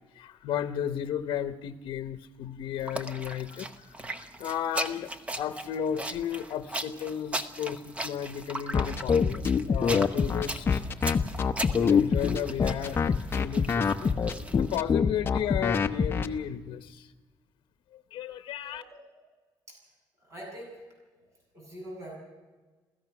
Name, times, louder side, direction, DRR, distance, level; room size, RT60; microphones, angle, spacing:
voice 1, 0.0-3.7 4.2-5.1 5.4-10.8 11.6-17.1 17.9-18.8, left 9 dB, 75° left, 9 dB, 0.9 m, -34 dB
sound 1, 2.8-14.8, right 1 dB, 15° right, 0.9 m, -38 dB
sound 2, 8.7-16.3, left 6 dB, 25° left, 0.8 m, -24 dB
voice 2, 18.6-19.2 19.7-19.8 20.2-20.9 21.2-21.3 21.5-22.2, right 1 dB, 35° right, -1 dB, 7.9 m, -44 dB
27.0 x 16.5 x 6.0 m, 1.3 s
cardioid pair, 165°, 9 cm